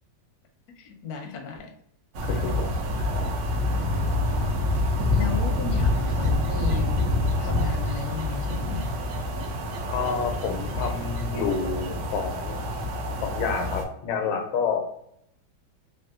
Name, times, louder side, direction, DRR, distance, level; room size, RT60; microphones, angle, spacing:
voice 1, 0.7-1.7 5.1-7.0 7.4-8.9, left 6 dB, 70° left, 3 dB, 0.9 m, -35 dB
sound 1, 2.1-13.8, left 1 dB, 70° right, 0.9 m, -26 dB
voice 2, 2.2-2.7 3.0-3.4 9.9-12.8 13.2-14.8, left 5 dB, 85° left, 4 dB, 1.5 m, -29 dB
3.6 x 2.3 x 2.4 m, 0.76 s
omnidirectional pair, 2.2 m